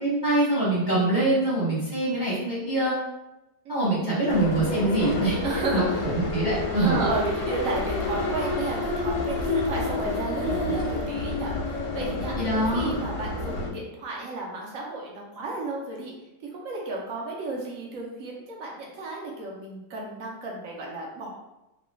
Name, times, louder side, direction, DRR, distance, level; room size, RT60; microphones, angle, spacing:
voice 1, 0.0-3.0 3.7-5.9 6.1-7.0 12.4-12.9, right 2 dB, 15° right, -8 dB, 0.8 m, -24 dB
voice 2, 3.6-4.0 5.4-6.1 6.8-12.4 12.7-16.1 16.5-21.4, right 2 dB, 65° right, -2 dB, 1.0 m, -33 dB
sound 1, 4.3-13.7, left 2 dB, 90° left, 1.2 m, -29 dB
3.1 x 2.2 x 3.1 m, 0.95 s
omnidirectional pair, 1.7 m